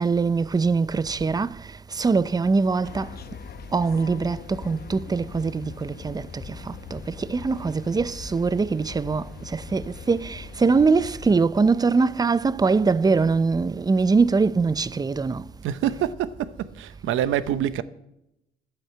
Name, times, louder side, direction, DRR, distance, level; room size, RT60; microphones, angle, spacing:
voice 1, 0.0-3.1 3.7-15.5, right 4 dB, 20° right, 0.5 m, -23 dB
sound 1, 2.8-11.4, left 6 dB, 50° left, 0.8 m, -41 dB
voice 2, 15.6-17.8, right 11 dB, 85° right, 0.8 m, -26 dB
12.0 x 8.9 x 7.9 m
cardioid pair, 90°, 20 cm